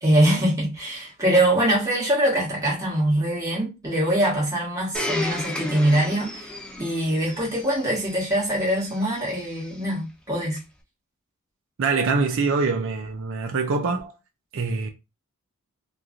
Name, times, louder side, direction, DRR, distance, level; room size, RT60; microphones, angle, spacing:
voice 1, 0.0-10.6, right 1 dB, 15° right, 1.3 m, -23 dB
Domestic sounds home sounds, 4.9-9.8 10.6-10.7, left 1 dB, 5° left, 0.4 m, -34 dB
voice 2, 11.8-14.1 14.5-14.9, right 4 dB, 60° right, 0.4 m, -24 dB
3.1 x 2.4 x 2.5 m
head